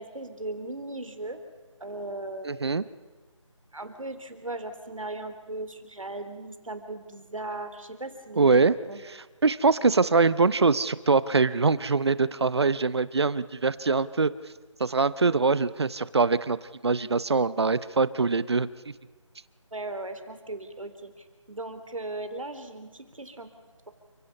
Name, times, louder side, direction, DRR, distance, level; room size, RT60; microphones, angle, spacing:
voice 1, 0.0-1.4 1.8-2.6 3.7-9.0 15.3-15.4 19.7-23.5, right 2 dB, 85° right, 8 dB, 3.3 m, -37 dB
voice 2, 2.4-2.8 8.4-8.7 9.0-14.3 14.8-16.6 16.8-18.9, right 4 dB, 55° right, 17 dB, 0.8 m, -23 dB
29.5 x 16.5 x 5.4 m, 1.4 s
figure-of-eight pair, 170°, 16 cm